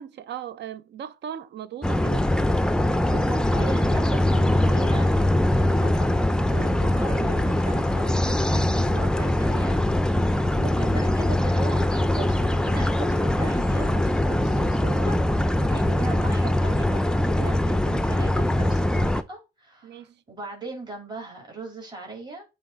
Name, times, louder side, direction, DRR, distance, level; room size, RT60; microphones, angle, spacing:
voice 1, 0.0-2.3 3.9-4.0 19.8-20.2, right 9 dB, 60° right, 0.6 m, -38 dB
sound 1, 1.8-19.2, left 1 dB, 5° left, 0.5 m, -22 dB
voice 2, 3.1-6.2 6.5-22.4, right 3 dB, 20° right, 2.9 m, -38 dB
8.6 x 3.2 x 3.9 m
cardioid pair, 90°, 20 cm